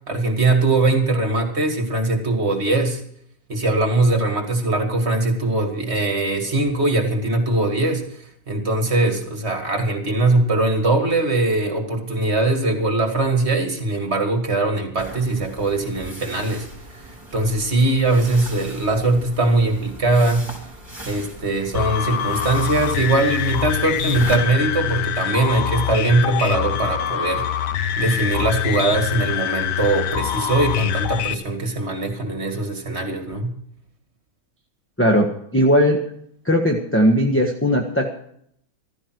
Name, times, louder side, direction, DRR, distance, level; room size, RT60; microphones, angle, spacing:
voice 1, 0.1-3.0 3.5-8.0 8.5-16.7 17.3-20.5 21.1-27.4 28.0-33.5, right 2 dB, 30° right, 5 dB, 2.4 m, -21 dB
sound 1, 15.0-24.4, right 1 dB, 10° right, 4.6 m, -38 dB
sound 2, 21.7-31.3, left 10 dB, 65° left, 1.2 m, -24 dB
voice 2, 35.0-36.0 36.4-38.1, equal, 5° left, 1 dB, 1.1 m, -18 dB
15.0 x 14.0 x 4.7 m, 0.67 s
omnidirectional pair, 2.2 m